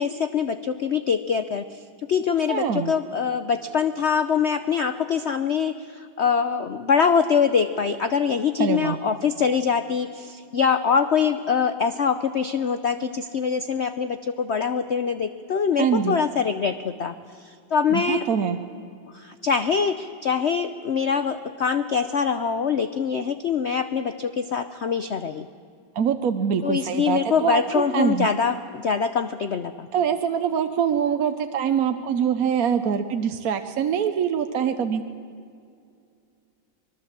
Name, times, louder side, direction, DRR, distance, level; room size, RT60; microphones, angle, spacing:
voice 1, 0.0-1.8 2.1-18.2 19.1-25.5 26.6-29.9, left 6 dB, 85° left, 10 dB, 0.6 m, -24 dB
voice 2, 2.5-2.9 8.6-9.0 15.8-16.2 17.9-18.6 25.9-28.3 29.9-35.0, right 7 dB, 55° right, 8 dB, 1.1 m, -24 dB
25.5 x 21.0 x 7.5 m, 2.3 s
omnidirectional pair, 2.1 m